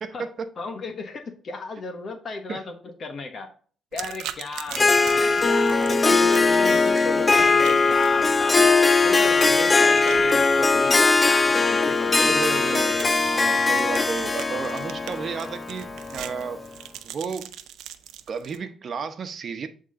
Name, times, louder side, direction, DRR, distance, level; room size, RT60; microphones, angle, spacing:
voice 1, 0.0-0.5 2.5-2.6 12.2-16.6 17.0-17.5 18.3-19.7, right 5 dB, 50° right, 1.0 m, -32 dB
voice 2, 0.6-3.5 3.9-8.8 9.0-12.3, left 3 dB, 50° left, 1.1 m, -35 dB
sound 1, 3.9-18.6, right 11 dB, 85° right, 0.6 m, -42 dB
Harp, 4.7-16.6, left 3 dB, 25° left, 0.6 m, -20 dB
8.5 x 3.8 x 3.7 m
cardioid pair, 90°, 0 cm